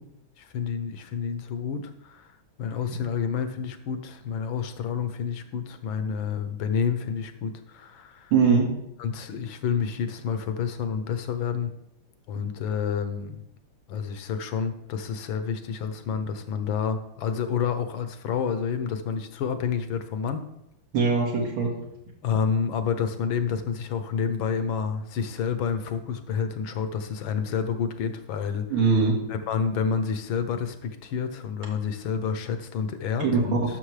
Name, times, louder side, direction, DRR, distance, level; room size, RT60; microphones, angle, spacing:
voice 1, 0.4-2.3 2.6-8.3 9.0-11.7 12.3-13.4 13.9-20.4 22.2-28.8 29.3-33.8, left 6 dB, 75° left, 9 dB, 1.5 m, -29 dB
voice 2, 8.3-8.7 20.9-21.8 28.7-29.2 33.2-33.7, right 5 dB, 80° right, -2 dB, 2.5 m, -21 dB
11.5 x 6.3 x 3.2 m, 0.80 s
omnidirectional pair, 2.3 m